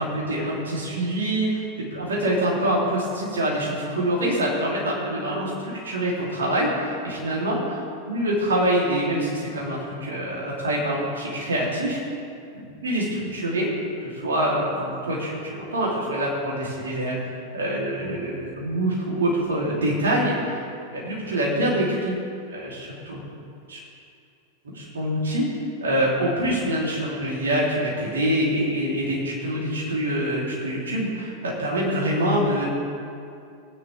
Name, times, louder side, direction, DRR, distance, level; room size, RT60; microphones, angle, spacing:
voice 1, 0.0-7.8 8.1-12.0 12.5-13.7 14.0-17.2 17.5-20.6 20.9-22.1 22.5-23.2 23.7-23.8 24.7-25.4 25.8-32.7, right 1 dB, 70° right, -5 dB, 3.4 m, -25 dB
17.0 x 10.0 x 3.6 m, 2.4 s
figure-of-eight pair, 90°, 0 cm